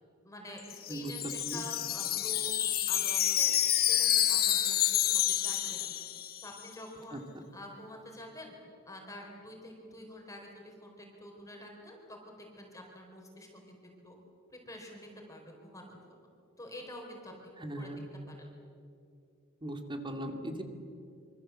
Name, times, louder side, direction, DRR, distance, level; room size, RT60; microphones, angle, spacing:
voice 1, 0.2-3.5 3.8-5.9 6.4-7.2 7.5-8.5 8.9-13.8 14.0-14.1 14.5-16.0 16.6-17.3 17.7-17.9 18.3-18.5, left 1 dB, 15° left, 0 dB, 4.4 m, -48 dB
Wind chime, 0.6-6.6, left 11 dB, 45° left, 1.3 m, -29 dB
voice 2, 7.1-7.4 17.6-18.0 19.6-20.6, right 1 dB, 25° right, 5 dB, 2.6 m, -39 dB
27.0 x 25.0 x 7.8 m, 2.6 s
head